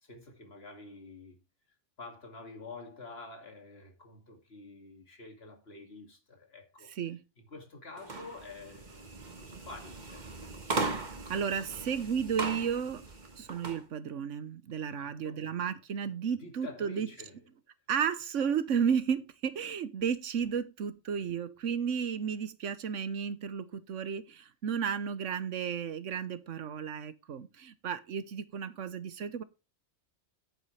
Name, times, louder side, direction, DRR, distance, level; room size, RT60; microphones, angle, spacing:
voice 1, 0.0-1.4 2.0-6.9 7.4-10.6 14.9-15.7 16.4-17.4, left 3 dB, 55° left, 2.6 m, -48 dB
sound 1, 8.0-13.8, right 3 dB, 40° right, 1.5 m, -38 dB
voice 2, 11.3-13.1 13.3-17.1 17.9-29.4, right 7 dB, 90° right, 1.3 m, -33 dB
10.5 x 9.1 x 3.3 m
omnidirectional pair, 1.2 m